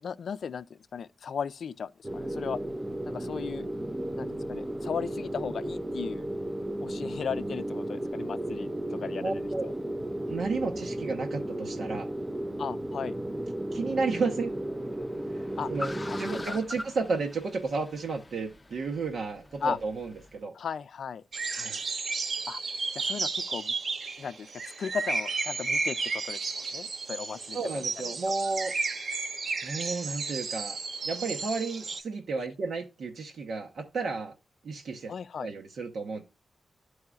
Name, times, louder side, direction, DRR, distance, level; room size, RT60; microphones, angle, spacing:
voice 1, 0.0-2.6 3.1-3.7 4.2-6.3 6.8-9.7 12.6-13.2 15.6-15.7 16.0-16.6 19.6-19.8 20.5-21.2 22.5-22.6 22.9-23.8 24.2-24.5 24.8-28.1 35.1-35.5, left 7 dB, 70° left, 0.4 m, -36 dB
sound 1, 2.0-16.5, right 1 dB, 15° right, 0.4 m, -34 dB
voice 2, 9.2-9.7 10.3-12.1 13.7-14.5 15.3-15.4 15.7-15.9 16.2-20.5 21.5-21.8 27.5-28.7 29.6-30.8 31.0-34.3 34.6-35.1 35.4-36.2, right 4 dB, 75° right, 0.9 m, -32 dB
Car, 13.0-20.4, left 2 dB, 20° left, 0.6 m, -45 dB
sound 2, 21.3-32.0, right 4 dB, 55° right, 0.7 m, -33 dB
12.0 x 4.7 x 2.4 m
wide cardioid pair, 145°, 0 cm